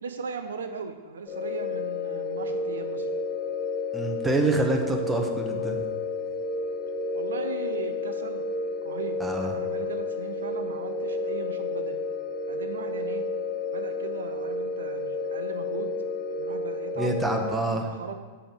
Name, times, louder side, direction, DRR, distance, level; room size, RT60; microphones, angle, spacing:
voice 1, 0.0-3.1 7.1-8.4 8.8-12.0 12.5-13.2 13.7-15.9 16.3-17.1 17.4-18.1, right 5 dB, 75° right, 7 dB, 0.6 m, -38 dB
sound 1, 1.3-17.6, left 3 dB, 35° left, 1.2 m, -31 dB
voice 2, 3.9-5.8 9.2-9.5 17.0-17.9, right 2 dB, 10° right, 2 dB, 1.1 m, -27 dB
7.0 x 5.1 x 6.2 m, 1.4 s
hypercardioid pair, 100°, 0 cm